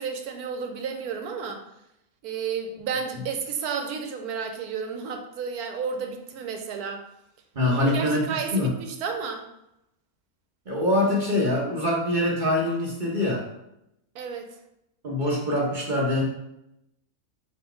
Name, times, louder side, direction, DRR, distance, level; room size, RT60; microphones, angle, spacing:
voice 1, 0.0-1.6 2.2-7.0 7.7-9.4 14.1-14.5, right 6 dB, 85° right, 5 dB, 1.2 m, -32 dB
voice 2, 7.5-8.7 10.7-13.5 15.0-16.2, left 1 dB, 40° right, -3 dB, 0.9 m, -24 dB
4.3 x 2.8 x 4.4 m, 0.82 s
omnidirectional pair, 1.6 m